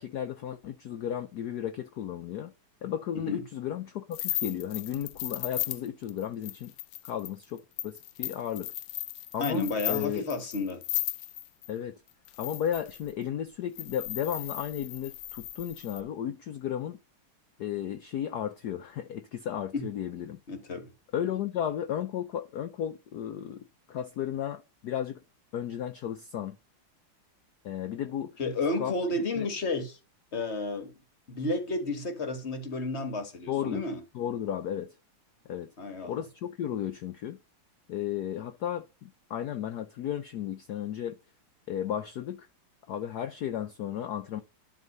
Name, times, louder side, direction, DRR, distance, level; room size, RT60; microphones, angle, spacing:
voice 1, 0.0-2.5 2.8-6.7 7.1-8.7 9.3-10.2 11.7-11.9 12.4-17.0 17.6-20.4 21.1-25.2 25.5-26.6 27.6-28.3 28.8-28.9 29.4-29.5 33.5-33.8 34.1-34.9 35.5-35.7 36.0-37.4 37.9-41.2 41.7-42.5 42.9-44.4, left 10 dB, 75° left, 0.9 m, -34 dB
sound 1, 4.1-11.7 12.3-13.1 13.8-16.0, left 16 dB, 90° left, 1.5 m, -36 dB
voice 2, 9.4-10.8 19.7-19.8 20.5-20.9 28.4-30.0 30.3-30.9 31.3-34.0 35.8-36.2, left 2 dB, 35° left, 1.5 m, -32 dB
11.0 x 3.7 x 5.3 m
omnidirectional pair, 2.4 m